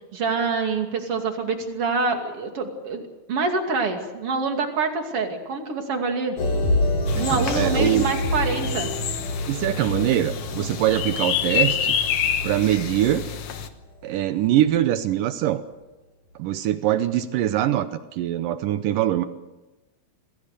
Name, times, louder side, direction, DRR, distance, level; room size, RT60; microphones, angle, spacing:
voice 1, 0.1-3.0 3.3-6.4 7.2-8.9, right 4 dB, 40° right, 4 dB, 3.0 m, -26 dB
sound 1, 6.4-14.2 14.7-14.8, left 1 dB, 45° left, 3.7 m, -28 dB
sound 2, 7.1-13.7, left 8 dB, 85° left, 1.3 m, -28 dB
voice 2, 7.2-8.1 9.5-12.0 12.4-13.2 14.0-15.6 16.4-19.2, right 12 dB, 75° right, 11 dB, 2.1 m, -23 dB
26.5 x 18.5 x 6.7 m, 1.1 s
omnidirectional pair, 4.7 m